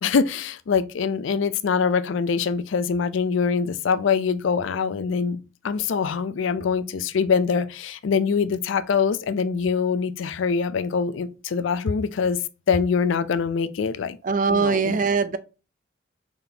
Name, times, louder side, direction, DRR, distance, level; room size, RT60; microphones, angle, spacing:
voice 1, 0.0-5.4 5.6-12.4 12.7-14.2 14.5-15.0, left 5 dB, 70° left, 0.4 m, -24 dB
voice 2, 14.2-15.4, right 4 dB, 40° right, 0.4 m, -21 dB
3.9 x 3.5 x 2.7 m
head